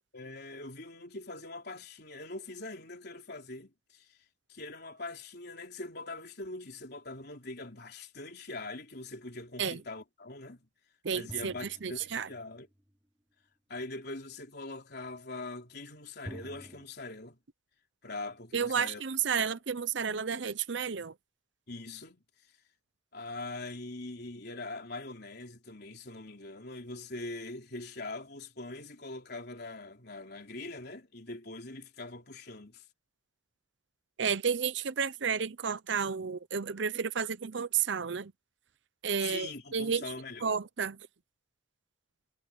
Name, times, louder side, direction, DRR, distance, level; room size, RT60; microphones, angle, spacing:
voice 1, 0.1-4.2 4.5-10.7 11.1-12.7 13.7-17.4 18.0-19.0 19.4-19.6 20.1-20.2 21.7-22.2 23.1-32.8 39.2-40.5, left 2 dB, 55° left, 3.9 m, -43 dB
voice 2, 11.0-12.3 18.5-21.1 34.2-38.3 39.0-40.0 40.4-41.0, right 6 dB, 65° right, 0.7 m, -31 dB
sound 1, 11.3-12.9 16.2-16.8, equal, 15° right, 3.4 m, -48 dB
head